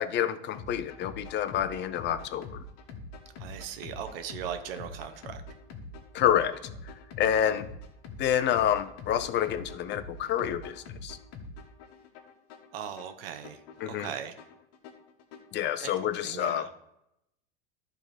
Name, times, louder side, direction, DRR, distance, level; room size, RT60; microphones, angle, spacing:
voice 1, 0.0-2.6 6.1-6.5 7.2-7.7 8.2-11.2 13.8-14.1 15.5-16.7, left 10 dB, 40° left, 12 dB, 0.7 m, -28 dB
sound 1, 0.5-15.6, left 3 dB, 55° left, 1.5 m, -45 dB
voice 2, 3.4-5.4 7.4-7.6 12.7-13.6 13.9-14.3 15.8-15.9 16.2-16.7, right 9 dB, 75° right, 8 dB, 1.0 m, -38 dB
11.5 x 3.8 x 5.1 m, 0.82 s
supercardioid pair, 110°, 29 cm